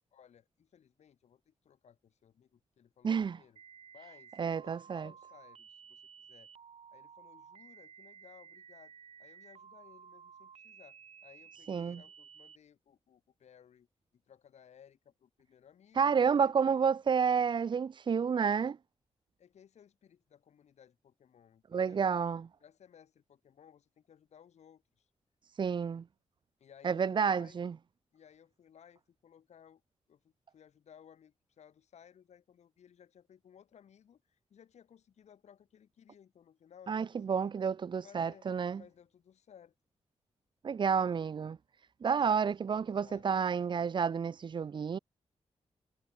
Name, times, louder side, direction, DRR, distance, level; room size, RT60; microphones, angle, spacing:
voice 1, 0.1-3.6 3.9-6.0 6.3-6.5 6.9-8.9 9.2-13.9 14.3-16.1 16.4-16.8 19.4-22.1 22.6-25.1 26.6-27.6 28.1-29.8 30.1-37.5 38.0-38.5 38.8-39.7 42.3-42.5 42.9-43.6, left 8 dB, 85° left, 3.6 m, -60 dB
voice 2, 3.0-3.4 4.4-5.1 11.7-12.0 16.0-18.8 21.7-22.5 25.5-26.0 26.8-27.7 36.9-38.8 40.6-41.6 42.0-45.0, right 6 dB, 45° right, 0.5 m, -30 dB
sound 1, 3.6-12.6, right 7 dB, 65° right, 2.0 m, -55 dB
wide cardioid pair, 105°, 11 cm